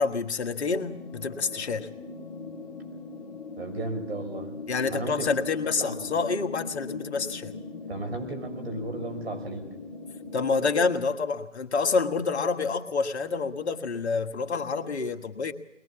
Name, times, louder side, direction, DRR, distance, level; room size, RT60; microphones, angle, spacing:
voice 1, 0.0-1.9 4.7-7.5 10.3-15.5, left 4 dB, 60° left, 6 dB, 1.6 m, -28 dB
sound 1, 0.7-10.9, left 4 dB, 25° left, 3.1 m, -40 dB
voice 2, 3.6-4.5 4.8-5.3 5.8-6.2 7.9-9.7, right 2 dB, 55° right, 6 dB, 6.0 m, -35 dB
21.5 x 21.5 x 7.3 m, 0.84 s
figure-of-eight pair, 150°, 37 cm